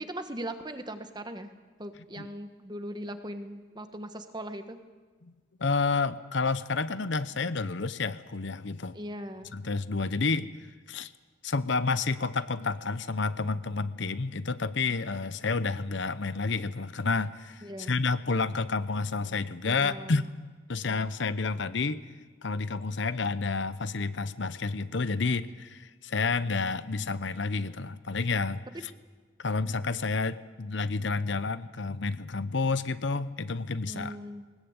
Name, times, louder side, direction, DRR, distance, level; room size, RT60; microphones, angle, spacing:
voice 1, 0.0-1.5 1.8-4.8 8.9-9.5 17.6-17.9 19.6-20.3 33.8-34.4, right 1 dB, 20° right, 8 dB, 1.3 m, -39 dB
voice 2, 5.6-9.0 9.5-10.5 10.9-11.1 11.4-20.3 20.7-22.0 22.4-28.9 29.4-34.2, left 4 dB, 60° left, 14 dB, 0.8 m, -30 dB
20.5 x 20.5 x 8.9 m, 1.4 s
head